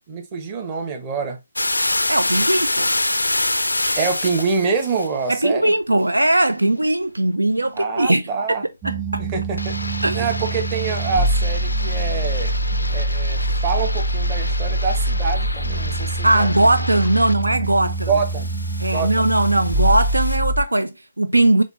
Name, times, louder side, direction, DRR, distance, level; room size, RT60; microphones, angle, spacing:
voice 1, 0.1-1.4 3.9-5.7 7.8-8.6 9.2-9.8 10.1-12.5 12.9-16.7 18.1-18.5 18.9-19.3, right 5 dB, 25° right, 0.9 m, -25 dB
sound 1, 1.6-5.1 9.6-17.5 17.8-20.4, left 2 dB, 80° left, 0.4 m, -27 dB
voice 2, 2.1-2.9 5.3-8.3 8.8-9.2 10.0-10.3 16.2-18.1 18.8-21.6, right 1 dB, 80° right, 0.4 m, -19 dB
sound 2, 8.8-20.6, right 1 dB, 5° right, 0.4 m, -24 dB
4.2 x 3.4 x 3.0 m
figure-of-eight pair, 145°, 0 cm